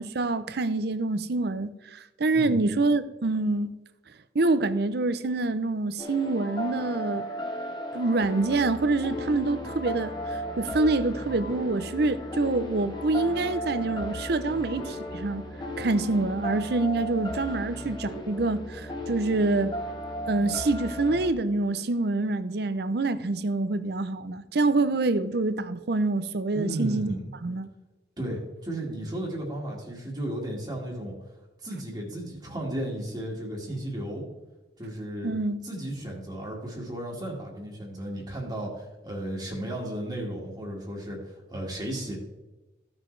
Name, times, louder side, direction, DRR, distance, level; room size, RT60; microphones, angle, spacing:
voice 1, 0.0-3.7 4.3-7.2 7.9-15.4 15.8-19.7 20.3-27.1 27.4-27.7 35.2-35.6, right 2 dB, 60° right, 0.6 m, -26 dB
sound 1, 6.0-21.3, equal, 25° left, 1.2 m, -35 dB
voice 2, 26.5-27.2 28.2-31.2 31.6-34.2 34.8-35.3 35.6-42.2, right 1 dB, 20° right, 1.8 m, -34 dB
15.0 x 6.2 x 3.2 m
head